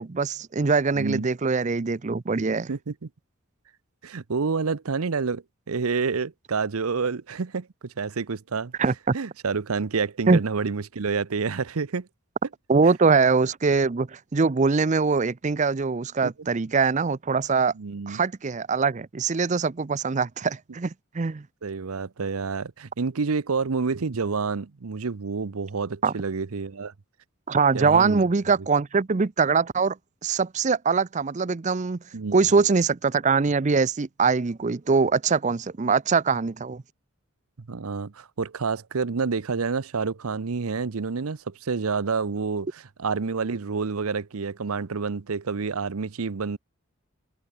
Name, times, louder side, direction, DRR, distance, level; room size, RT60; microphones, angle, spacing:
voice 1, 0.0-2.7 8.8-8.9 10.3-10.4 12.7-17.7 18.1-21.4 26.0-26.1 27.5-30.0 30.2-32.0 32.3-36.8, right 4 dB, 35° right, 0.5 m, -23 dB
voice 2, 0.9-1.3 2.7-3.1 4.0-8.7 9.1-12.1 16.2-16.3 17.7-18.2 21.6-26.9 27.7-28.2 32.1-32.7 37.6-46.6, right 4 dB, 80° right, 0.7 m, -28 dB
head